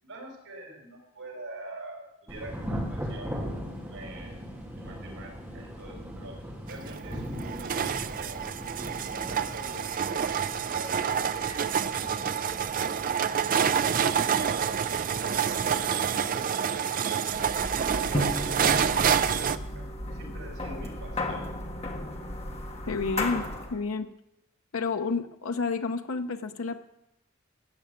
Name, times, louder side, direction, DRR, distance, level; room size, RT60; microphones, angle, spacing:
voice 1, 0.0-3.4 3.9-4.4 4.7-6.4 6.7-8.5 8.8-12.5 13.6-18.3 18.7-21.5, right 1 dB, 90° right, -1 dB, 4.4 m, -45 dB
Thunder / Rain, 2.3-18.5, equal, 10° right, 2.2 m, -40 dB
sound 1, 6.7-19.6, right 7 dB, 40° right, 0.4 m, -27 dB
sound 2, 17.3-23.8, left 1 dB, 30° left, 1.4 m, -34 dB
voice 2, 22.9-24.1 24.7-26.8, left 4 dB, 90° left, 7 dB, 0.7 m, -30 dB
14.0 x 6.8 x 9.1 m, 0.89 s
head